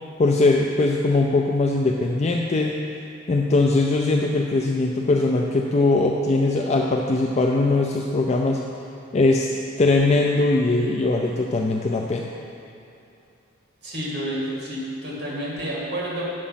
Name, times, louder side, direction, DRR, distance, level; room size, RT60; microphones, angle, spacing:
voice 1, 0.2-2.8 3.3-8.6 9.1-9.5 9.8-12.3, left 2 dB, 35° left, 1 dB, 0.4 m, -20 dB
voice 2, 13.8-16.2, right 1 dB, 55° right, -5 dB, 2.0 m, -29 dB
8.4 x 6.3 x 5.7 m, 2.8 s
head